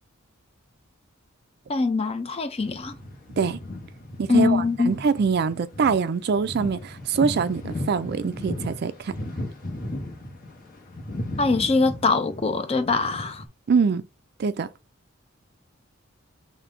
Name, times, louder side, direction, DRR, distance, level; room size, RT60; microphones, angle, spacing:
voice 1, 1.7-2.9 4.3-4.9 11.4-13.4, left 4 dB, 30° left, 0.5 m, -23 dB
sound 1, 2.6-13.5, left 1 dB, 45° left, 1.0 m, -36 dB
voice 2, 4.2-9.2 13.7-14.0 14.4-14.7, right 5 dB, 50° right, 0.4 m, -24 dB
5.8 x 2.2 x 3.6 m
head